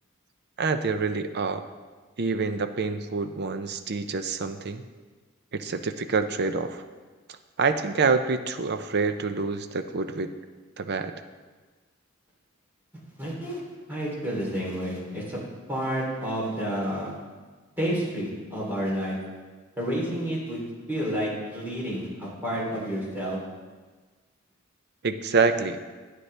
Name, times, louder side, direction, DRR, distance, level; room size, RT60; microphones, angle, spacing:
voice 1, 0.6-1.6 2.2-4.9 5.5-6.8 7.6-10.3 10.8-11.1 25.0-25.8, right 4 dB, 50° right, 9 dB, 0.6 m, -26 dB
voice 2, 13.2-13.6 13.9-15.4 15.7-17.1 17.8-19.2 19.8-20.6 20.9-23.4, equal, 10° right, -6 dB, 3.1 m, -30 dB
12.0 x 9.4 x 3.3 m, 1.4 s
head